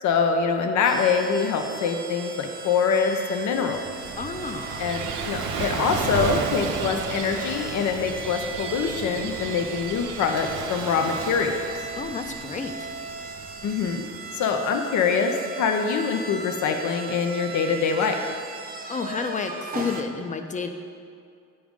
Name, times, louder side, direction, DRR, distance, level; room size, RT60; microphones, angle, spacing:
voice 1, 0.0-3.8 4.8-11.6 13.6-14.1 14.3-18.2, left 5 dB, 70° left, 5 dB, 0.7 m, -24 dB
sound 1, 0.8-20.0, right 4 dB, 30° right, 0.7 m, -38 dB
Gull seagull / Waves surf, 3.6-14.2, right 5 dB, 85° right, 0.7 m, -33 dB
voice 2, 4.2-4.9 12.0-12.9 18.9-20.7, left 5 dB, 25° left, 7 dB, 0.6 m, -31 dB
8.7 x 5.0 x 3.6 m, 2.3 s
cardioid pair, 90°, 30 cm